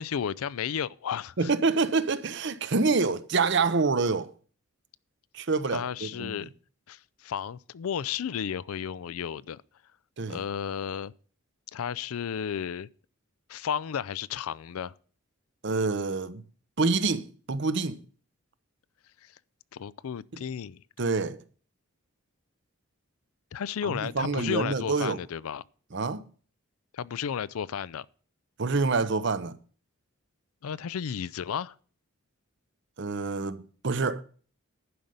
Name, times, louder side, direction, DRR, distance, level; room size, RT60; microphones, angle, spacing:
voice 1, 0.0-1.5 5.7-6.5 6.9-9.6 10.3-11.1 11.7-12.9 13.5-14.9 19.2-19.3 19.7-20.8 23.5-25.6 26.9-28.1 30.6-31.7, left 8 dB, 80° left, 0.4 m, -33 dB
voice 2, 1.4-4.3 5.3-6.3 10.2-10.4 15.6-16.4 16.8-18.0 21.0-21.4 23.8-25.2 25.9-26.2 28.6-29.6 33.0-34.2, right 4 dB, 55° right, 0.7 m, -27 dB
11.0 x 5.3 x 7.8 m
head